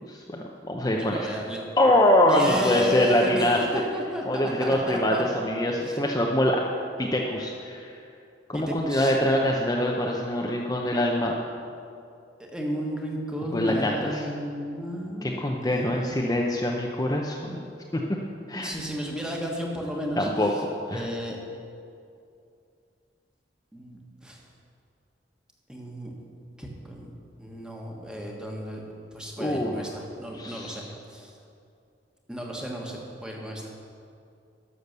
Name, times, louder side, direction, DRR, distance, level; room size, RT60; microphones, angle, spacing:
voice 1, 0.0-1.3 1.8-3.8 4.3-6.6 7.0-7.9 8.5-11.4 13.5-14.3 15.2-17.6 17.9-18.0 18.5-18.7 20.2-21.1 29.4-29.7 30.3-30.9, left 1 dB, 20° left, -1 dB, 0.7 m, -24 dB
voice 2, 0.9-1.6 2.3-5.2 5.8-6.0 8.5-9.1 12.4-16.1 18.5-20.6 20.9-21.4 23.7-24.4 25.7-26.1 26.6-27.1 27.4-28.8 29.1-31.3 32.3-33.7, equal, 5° right, -1 dB, 1.4 m, -34 dB
12.0 x 6.6 x 6.7 m, 2.5 s
head